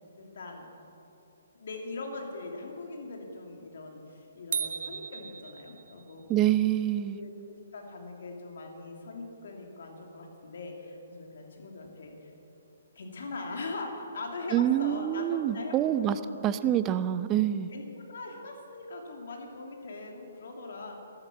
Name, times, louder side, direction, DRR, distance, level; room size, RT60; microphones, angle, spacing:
voice 1, 0.2-0.7 1.5-6.3 7.1-7.3 7.7-12.3 12.9-16.5 17.7-21.0, left 3 dB, 60° left, 2 dB, 2.8 m, -41 dB
sound 1, 4.5-6.1, right 6 dB, 60° right, 0.8 m, -35 dB
voice 2, 6.3-7.2 14.5-17.7, right 11 dB, 20° right, 13 dB, 0.5 m, -26 dB
14.0 x 12.0 x 7.4 m, 2.9 s
figure-of-eight pair, 135°, 0 cm